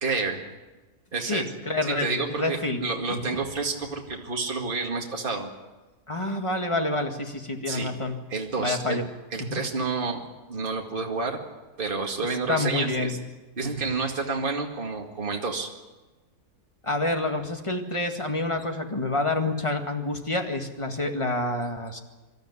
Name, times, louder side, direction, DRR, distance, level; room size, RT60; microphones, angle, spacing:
voice 1, 0.0-0.4 1.1-1.4 2.0-5.5 7.7-7.9 8.3-9.0 9.3-10.2 10.5-11.4 11.8-13.2 13.6-15.7, right 4 dB, 35° right, 1 dB, 2.3 m, -29 dB
voice 2, 1.2-2.8 3.1-3.4 6.1-8.2 8.6-9.1 9.4-9.6 12.5-13.1 13.6-13.9 16.8-22.0, left 2 dB, 20° left, 4 dB, 1.9 m, -28 dB
25.5 x 13.0 x 9.8 m, 1.2 s
omnidirectional pair, 1.6 m